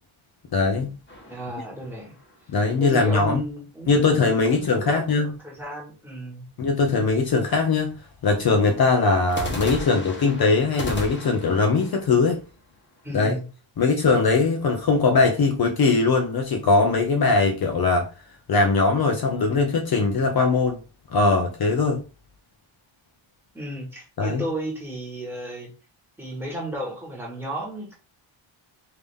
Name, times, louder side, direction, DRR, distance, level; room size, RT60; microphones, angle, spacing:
voice 1, 0.5-1.0 2.5-3.4 3.9-5.3 6.6-8.0 8.2-12.4 13.1-13.3 13.8-18.1 18.5-20.8 21.1-22.0 24.2-24.4, left 4 dB, 50° left, 0.6 m, -21 dB
sound 1, 1.1-2.5 9.3-13.2, equal, 25° left, 1.0 m, -36 dB
voice 2, 1.3-2.1 2.8-4.1 4.5-6.5 13.0-13.4 23.5-25.7 26.2-27.9, right 1 dB, 5° right, 1.6 m, -33 dB
3.4 x 2.8 x 3.5 m
wide cardioid pair, 155°, 49 cm